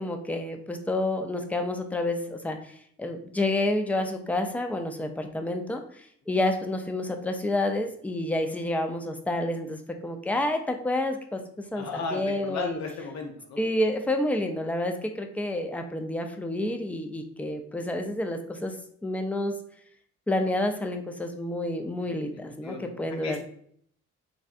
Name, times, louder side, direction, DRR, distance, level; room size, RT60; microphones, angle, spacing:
voice 1, 0.0-11.4 11.7-12.8 13.6-18.7 19.0-19.5 20.3-23.5, left 1 dB, 5° left, 5 dB, 0.3 m, -29 dB
voice 2, 11.7-13.6 22.3-22.9 23.2-23.5, left 4 dB, 65° left, 3 dB, 0.8 m, -35 dB
3.3 x 2.6 x 2.3 m, 0.64 s
cardioid pair, 90°, 30 cm